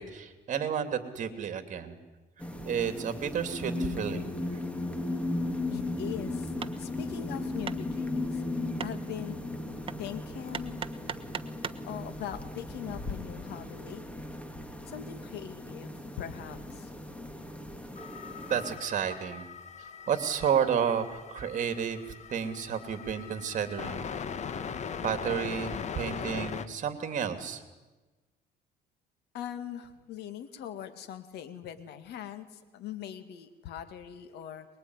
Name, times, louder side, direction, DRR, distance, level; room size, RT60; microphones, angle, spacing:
voice 1, 0.0-2.0 2.6-4.3 18.5-19.5 20.1-22.0 22.3-24.0 25.0-27.6, right 7 dB, 50° right, 9 dB, 3.0 m, -31 dB
sound 1, 2.4-18.8, left 2 dB, 5° left, 2.6 m, -36 dB
voice 2, 5.7-8.4 8.8-9.4 10.0-10.8 11.8-14.3 14.9-16.9 29.3-34.7, left 10 dB, 80° left, 11 dB, 2.3 m, -41 dB
Hammer, 6.6-11.9, right 6 dB, 30° right, 1.2 m, -42 dB
sound 2, 18.0-26.7, left 6 dB, 45° left, 1.5 m, -40 dB
23.5 x 22.0 x 9.9 m, 1.2 s
cardioid pair, 110°, 17 cm